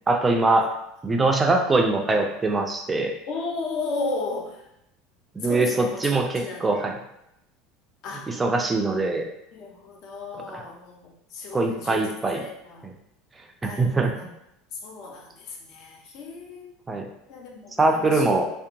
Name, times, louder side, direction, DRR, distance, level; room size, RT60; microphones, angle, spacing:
voice 1, 0.1-0.8 1.0-3.1 5.4-7.0 8.3-9.3 10.5-10.6 11.5-12.4 12.8-12.9 13.6-14.1 16.9-17.1 17.8-18.5, right 2 dB, 15° right, 3 dB, 0.3 m, -22 dB
voice 2, 3.3-4.7 5.4-6.9 8.0-8.4 9.0-9.1 9.5-12.9 13.6-14.2 14.7-16.8 17.3-18.4, left 3 dB, 50° left, 1 dB, 0.5 m, -35 dB
2.7 x 2.1 x 2.6 m, 0.82 s
supercardioid pair, 140°, 0 cm